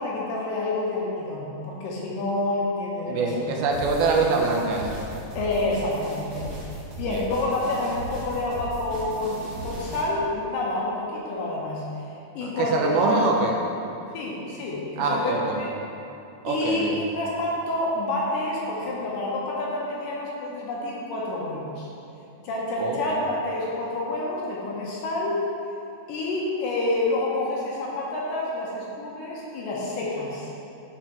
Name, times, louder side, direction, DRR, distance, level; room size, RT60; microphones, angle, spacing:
voice 1, 0.0-3.3 5.4-6.5 7.0-11.8 12.4-13.3 14.1-15.7 16.5-21.9 22.4-25.4 26.1-30.5, left 2 dB, 75° left, -4 dB, 2.3 m, -28 dB
voice 2, 3.1-5.0 7.1-7.2 12.4-13.5 15.0-15.6 16.4-17.0 22.8-23.0, right 3 dB, 85° right, 0 dB, 2.6 m, -24 dB
sound 1, 3.7-10.1, right 1 dB, 70° right, 1.3 m, -37 dB
11.0 x 4.3 x 2.9 m, 2.7 s
omnidirectional pair, 4.4 m